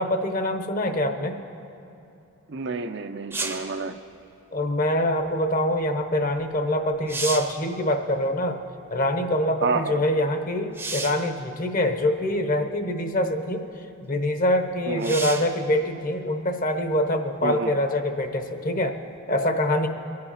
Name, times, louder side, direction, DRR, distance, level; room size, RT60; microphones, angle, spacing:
voice 1, 0.0-1.4 4.5-8.6 8.9-13.6 14.0-18.9 19.3-19.9, left 1 dB, 40° left, 6 dB, 0.9 m, -24 dB
voice 2, 2.5-4.0 9.6-10.0 14.9-15.2 17.4-17.7, right 4 dB, 50° right, 8 dB, 0.5 m, -29 dB
sound 1, 3.3-3.8 6.4-6.5 6.9-7.6 10.7-11.3 12.3-12.4 15.0-15.6 19.2-19.3, right 3 dB, 10° right, 0.7 m, -32 dB
22.5 x 7.7 x 5.7 m, 2.8 s
head